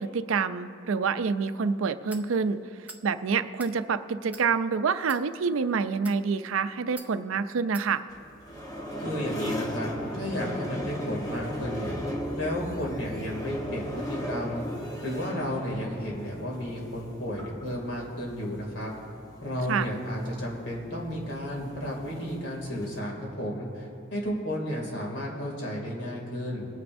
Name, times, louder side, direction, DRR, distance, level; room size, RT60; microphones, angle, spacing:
voice 1, 0.0-2.6 3.0-8.0 19.7-19.9, right 5 dB, 80° right, 12 dB, 0.4 m, -27 dB
sound 1, 2.1-2.3 2.8-3.0 3.5-3.7 4.3-4.5 5.0-5.2 5.9-6.2 7.0-7.1 7.7-7.9, right 3 dB, 5° right, 0.4 m, -44 dB
sound 2, 8.1-23.0, equal, 15° left, 1.1 m, -37 dB
voice 2, 9.0-12.0 12.4-14.6 15.0-18.9 19.4-26.7, equal, 60° left, -2 dB, 2.4 m, -33 dB
22.5 x 9.2 x 2.6 m, 2.6 s
head